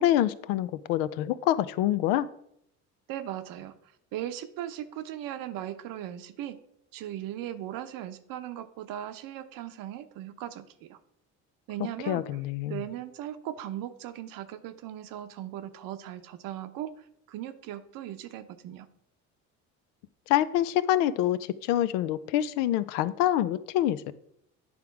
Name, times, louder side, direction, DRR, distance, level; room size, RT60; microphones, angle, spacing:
voice 1, 0.0-2.3 12.1-12.8 20.3-24.1, left 12 dB, 90° left, 15 dB, 0.6 m, -26 dB
voice 2, 3.1-3.7 4.1-6.6 6.9-11.0 11.7-12.3 12.7-18.9, right 12 dB, 70° right, 10 dB, 0.9 m, -38 dB
9.6 x 3.6 x 5.9 m, 0.74 s
supercardioid pair, 85°, 35 cm